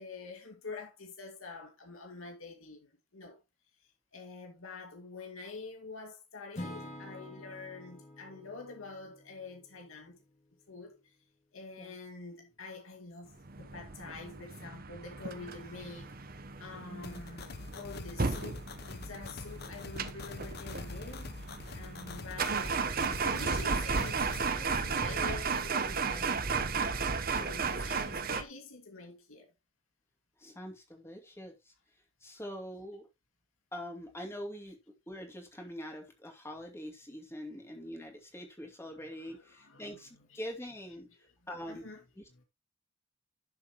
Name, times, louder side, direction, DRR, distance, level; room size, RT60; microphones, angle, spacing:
voice 1, 0.0-3.4 4.1-10.2 10.7-11.0 11.5-16.3 16.6-22.6 23.0-26.7 27.2-29.5 32.4-32.5 38.7-40.3 41.6-42.0 42.3-42.4, left 3 dB, 80° left, 2.2 m, -47 dB
Acoustic guitar / Strum, 6.5-10.6, left 1 dB, 35° left, 2.6 m, -48 dB
sound 1, 13.5-28.4, right 5 dB, 45° right, 0.9 m, -34 dB
voice 2, 16.8-17.2 30.4-31.7 32.2-33.1 33.7-41.9 42.1-42.3, equal, 10° left, 2.5 m, -44 dB
sound 2, 17.0-24.5, left 3 dB, 50° left, 0.7 m, -45 dB
11.5 x 7.0 x 3.0 m
head